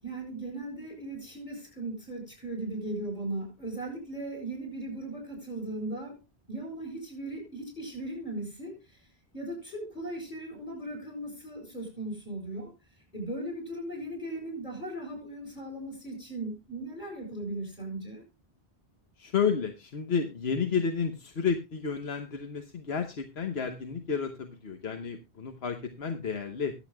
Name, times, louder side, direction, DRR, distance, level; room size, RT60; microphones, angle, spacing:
voice 1, 0.0-6.2 6.5-8.8 9.3-12.7 13.1-18.2, right 1 dB, 45° left, 0 dB, 8.0 m, -37 dB
voice 2, 19.2-26.7, left 6 dB, 85° left, 5 dB, 1.3 m, -31 dB
23.0 x 8.2 x 2.3 m, 0.25 s
omnidirectional pair, 1.0 m